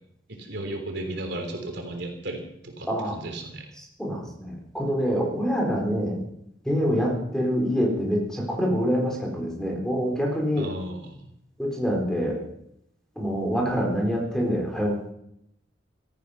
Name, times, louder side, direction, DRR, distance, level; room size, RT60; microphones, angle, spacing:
voice 1, 0.3-3.7 10.6-11.2, right 1 dB, 60° right, 3 dB, 3.5 m, -35 dB
voice 2, 2.9-3.2 4.0-6.2 6.7-10.7 11.6-12.4 13.2-15.0, equal, 5° left, -1 dB, 4.0 m, -25 dB
17.0 x 14.5 x 5.7 m, 0.75 s
head